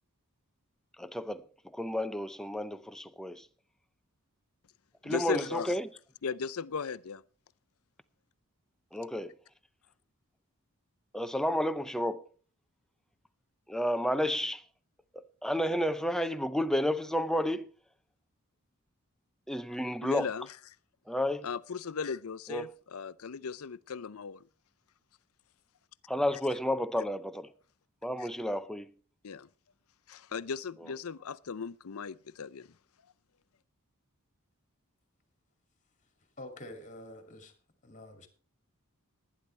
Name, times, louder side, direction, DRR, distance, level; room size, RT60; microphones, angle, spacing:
voice 1, 1.0-1.4 1.7-3.5 5.0-5.9 8.9-9.4 11.1-12.3 13.7-14.6 15.1-17.7 19.5-20.3 21.1-21.5 22.5-22.7 26.1-27.5 28.0-28.9, equal, ahead, 0.5 m, -31 dB
voice 2, 5.0-5.8 6.2-7.2 20.0-20.6 21.4-24.4 28.2-28.3 29.2-29.5 30.1-32.7, left 5 dB, 70° left, 0.6 m, -37 dB
voice 3, 36.4-37.5 37.8-38.3, left 1 dB, 35° left, 2.5 m, -47 dB
20.0 x 10.0 x 3.3 m
head